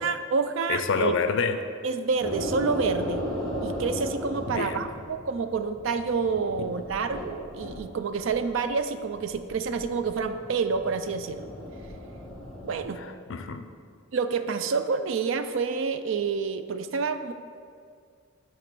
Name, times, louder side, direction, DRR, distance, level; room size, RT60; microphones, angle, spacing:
voice 1, 0.0-1.1 1.8-3.2 3.6-11.5 12.6-13.0 14.1-17.3, right 5 dB, 60° right, 10 dB, 0.4 m, -28 dB
voice 2, 0.7-1.7 4.5-4.9 6.6-6.7 13.0-13.7, left 5 dB, 60° left, 9 dB, 0.4 m, -28 dB
sound 1, 2.2-7.9 8.2-8.7 9.1-12.9, left 1 dB, ahead, 1.1 m, -36 dB
9.0 x 3.0 x 6.0 m, 2.2 s
head